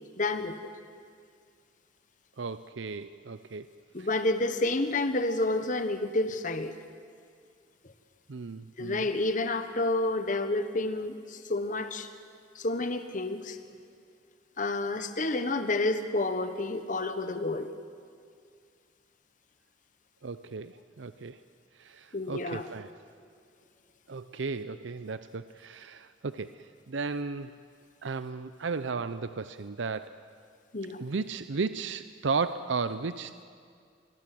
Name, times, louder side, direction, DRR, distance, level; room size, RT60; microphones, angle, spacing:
voice 1, 0.2-0.7 3.9-6.7 7.8-7.9 8.8-12.1 12.5-13.6 14.6-17.7 22.1-22.7 30.7-31.0, left 2 dB, 45° left, 9 dB, 1.2 m, -29 dB
voice 2, 2.4-3.7 4.0-4.1 8.3-9.0 20.2-21.4 21.8-22.9 24.1-27.5 28.0-30.2 31.0-33.4, right 4 dB, 80° right, 12 dB, 0.6 m, -35 dB
26.5 x 20.5 x 7.7 m, 2.2 s
head